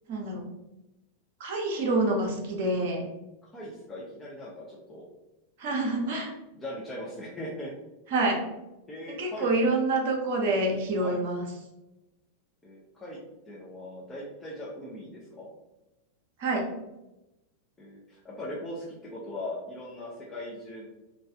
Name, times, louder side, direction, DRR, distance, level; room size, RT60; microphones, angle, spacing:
voice 1, 0.1-0.5 1.4-3.1 5.6-6.3 8.1-8.4 9.1-11.5 16.4-16.7, right 2 dB, 50° right, 1 dB, 0.8 m, -27 dB
voice 2, 3.5-5.1 6.5-7.7 8.9-9.5 11.0-11.2 12.6-13.2 13.5-15.5 17.8-20.9, left 1 dB, 15° left, -6 dB, 0.7 m, -39 dB
3.3 x 2.6 x 3.4 m, 0.99 s
figure-of-eight pair, 90°, 0 cm